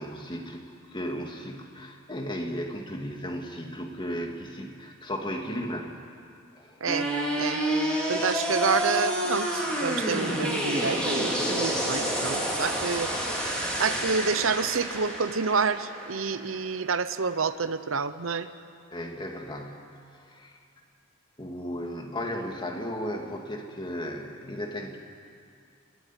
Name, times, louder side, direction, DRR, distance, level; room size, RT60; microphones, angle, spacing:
voice 1, 0.0-5.9 6.5-6.8 18.9-20.6 21.4-25.0, equal, 25° left, 2 dB, 2.3 m, -35 dB
sound 1, 6.9-16.9, equal, 5° left, 4.1 m, -29 dB
voice 2, 8.1-13.1 13.8-18.5, right 5 dB, 75° right, 12 dB, 0.8 m, -28 dB
28.0 x 13.5 x 10.0 m, 2.4 s
head